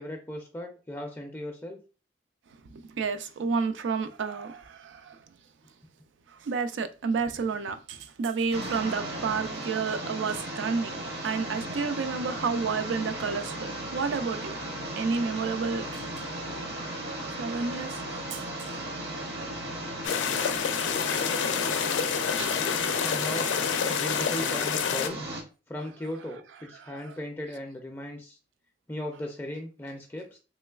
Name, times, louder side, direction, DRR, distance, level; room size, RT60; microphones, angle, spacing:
voice 1, 0.0-1.8 23.1-23.5 23.9-25.2 25.7-28.4 28.9-30.4, left 1 dB, 10° left, 0.4 m, -37 dB
voice 2, 2.7-5.2 6.3-14.6 15.0-16.1 17.4-18.7 20.2-20.4 22.4-22.8 26.8-27.0, right 5 dB, 80° right, 0.4 m, -31 dB
sound 1, 8.5-25.4, right 1 dB, 60° right, 0.8 m, -36 dB
sound 2, 20.0-25.1, left 7 dB, 85° left, 0.4 m, -28 dB
3.1 x 3.1 x 2.3 m
head